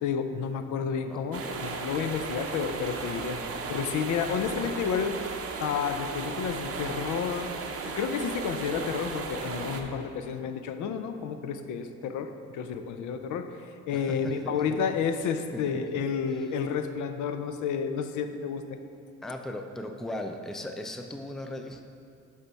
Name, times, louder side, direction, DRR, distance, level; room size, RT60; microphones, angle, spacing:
voice 1, 0.0-3.4 3.7-5.2 5.6-7.5 7.8-13.5 13.9-18.6, left 6 dB, 75° left, 8 dB, 0.5 m, -31 dB
voice 2, 1.1-1.7 4.5-4.8 13.9-14.8 15.5-16.0 16.3-16.5 19.2-21.8, left 1 dB, ahead, 5 dB, 0.4 m, -39 dB
sound 1, 1.3-9.8, right 4 dB, 50° right, 0.7 m, -35 dB
9.7 x 3.5 x 4.0 m, 2.4 s
cardioid pair, 90°, 30 cm